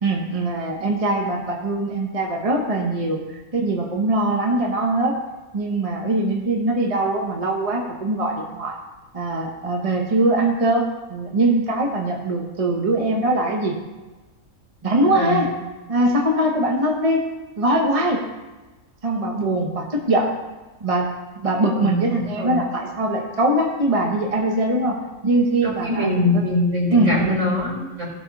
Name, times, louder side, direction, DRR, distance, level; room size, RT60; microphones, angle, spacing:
voice 1, 0.0-5.1 5.5-8.8 9.1-13.7 14.8-15.5 15.9-17.2 17.6-18.2 19.0-20.3 20.8-21.1 21.4-24.9 25.2-26.1 26.3-26.4 26.9-27.4, right 2 dB, 30° right, 0 dB, 1.1 m, -22 dB
voice 2, 15.0-15.5 21.7-22.5 25.6-28.1, left 2 dB, 65° right, -4 dB, 4.5 m, -23 dB
17.0 x 6.0 x 4.2 m, 1.2 s
omnidirectional pair, 1.4 m